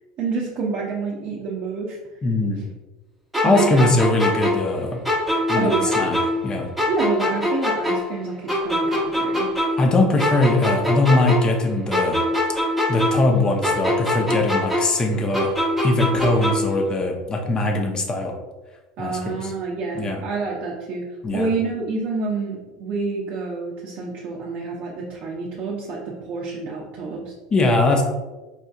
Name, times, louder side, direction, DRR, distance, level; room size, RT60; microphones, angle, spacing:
voice 1, 0.2-2.0 3.4-3.9 5.5-6.0 6.9-9.5 19.0-21.0 21.3-27.3, right 4 dB, 50° right, -3 dB, 0.6 m, -28 dB
voice 2, 2.2-2.6 3.4-5.0 5.5-6.2 6.4-6.7 9.8-12.2 12.9-15.5 15.8-18.3 19.0-19.4 19.9-20.2 21.2-21.5 27.5-28.0, left 2 dB, 25° left, 3 dB, 0.7 m, -21 dB
sound 1, 3.3-6.5 6.8-9.9 10.2-13.4 13.6-16.8, left 1 dB, 5° right, 0.9 m, -23 dB
4.4 x 2.6 x 2.4 m, 1.2 s
supercardioid pair, 95°, 3 cm